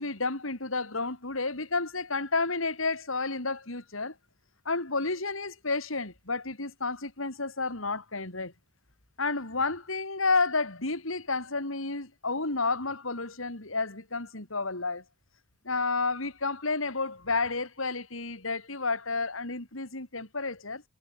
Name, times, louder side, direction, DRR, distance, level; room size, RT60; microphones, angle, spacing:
voice 1, 0.0-4.1 4.7-8.5 9.2-15.0 15.6-20.8, left 3 dB, 85° left, 4.2 m, -31 dB
head